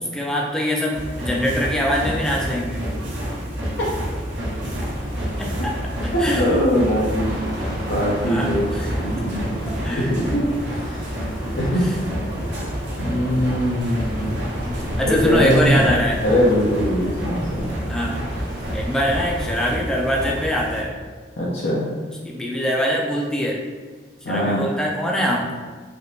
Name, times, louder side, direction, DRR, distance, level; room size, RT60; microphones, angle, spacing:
voice 1, 0.1-2.8 5.4-5.7 6.0-6.6 8.3-8.9 9.2-9.3 9.8-10.1 14.6-16.2 17.9-18.2 18.7-20.9 22.2-23.6 24.3-25.5, equal, 5° left, -2 dB, 0.4 m, -23 dB
sound 1, 0.9-20.8, equal, 90° right, 0.8 m, -29 dB
sound 2, 4.3-19.8, equal, 50° right, 0.7 m, -34 dB
voice 2, 6.1-7.3 7.9-8.7 8.9-9.6 10.0-10.4 10.8-11.1 11.5-11.9 13.0-14.3 15.1-15.8 16.2-17.7 21.4-22.0 24.2-24.6, equal, 65° left, -6 dB, 0.5 m, -21 dB
3.3 x 2.9 x 2.7 m, 1.4 s
head